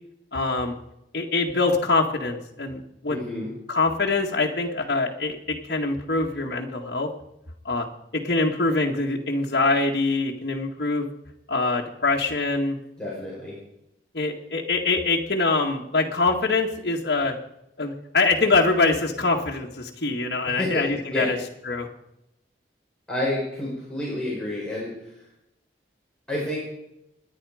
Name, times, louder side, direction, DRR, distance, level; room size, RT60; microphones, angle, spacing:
voice 1, 0.3-0.8 1.1-3.2 3.7-7.1 7.7-7.9 8.1-11.1 11.5-12.8 14.1-17.3 17.8-21.4 21.7-21.9, left 3 dB, 60° left, -2 dB, 1.8 m, -24 dB
voice 2, 3.1-3.5 13.0-13.5 20.5-20.8 21.1-21.3 23.1-24.9 26.3-26.6, left 1 dB, 5° left, -7 dB, 5.1 m, -29 dB
27.5 x 10.5 x 5.0 m, 0.84 s
head